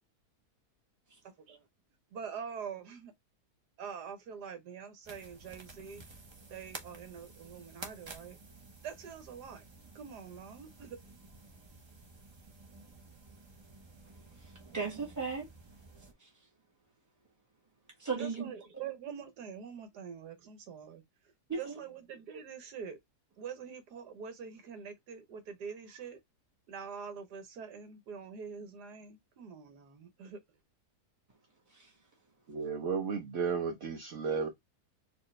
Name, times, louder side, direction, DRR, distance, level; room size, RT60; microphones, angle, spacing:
voice 1, 2.1-3.1 3.8-6.1 6.5-8.4 8.8-9.6 9.9-11.0 18.2-21.0 21.6-23.0 23.4-26.2 26.7-30.4, right 7 dB, 80° right, 1.5 m, -45 dB
sound 1, 5.0-16.1, right 3 dB, 30° right, 0.5 m, -52 dB
voice 2, 14.4-15.5 16.2-16.3 18.0-18.5 21.5-21.8 31.7-31.9, right 5 dB, 10° right, 1.6 m, -36 dB
voice 3, 32.5-34.5, right 5 dB, 55° right, 1.1 m, -33 dB
4.4 x 3.0 x 3.1 m
omnidirectional pair, 1.7 m